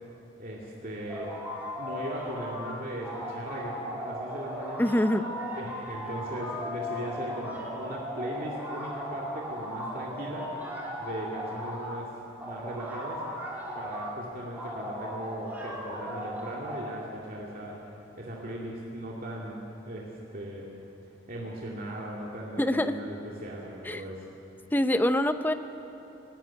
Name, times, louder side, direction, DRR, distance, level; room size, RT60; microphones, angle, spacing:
voice 1, 0.4-1.3 1.8-4.9 5.5-10.6 11.0-13.3 13.7-17.8 18.2-20.7 21.0-24.2, right 1 dB, 50° right, -4 dB, 2.4 m, -38 dB
sound 1, 1.1-2.7 3.0-11.9 12.4-14.1 14.5-16.9, equal, 10° right, 3.8 m, -37 dB
voice 2, 4.8-5.3 22.6-22.9 23.8-24.0 24.7-25.5, left 1 dB, 10° left, 9 dB, 0.7 m, -25 dB
18.0 x 16.5 x 10.0 m, 3.0 s
head